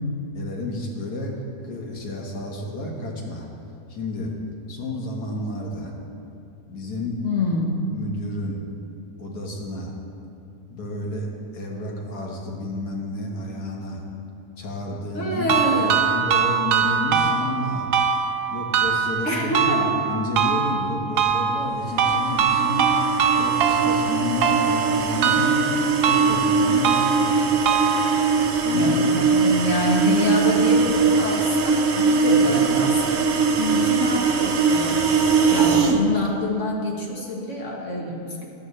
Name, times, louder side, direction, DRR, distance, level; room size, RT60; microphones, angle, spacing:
voice 1, 0.3-1.3 1.6-3.5 3.9-4.3 4.7-5.9 6.7-7.2 7.9-8.6 9.2-9.9 10.7-14.0 14.6-15.5 15.8-17.9 18.5-22.9 23.4-27.4 28.6-29.1 32.3-32.8, left 2 dB, 75° left, -1 dB, 2.0 m, -30 dB
voice 2, 7.2-7.9 15.1-16.0 19.2-19.9 28.7-33.3 33.6-38.5, left 1 dB, 50° left, -1 dB, 1.7 m, -26 dB
sound 1, 15.5-28.5, right 7 dB, 80° right, 1.3 m, -23 dB
sound 2, 22.1-36.0, right 4 dB, 55° right, 0.8 m, -21 dB
14.0 x 11.0 x 3.3 m, 2.6 s
omnidirectional pair, 1.7 m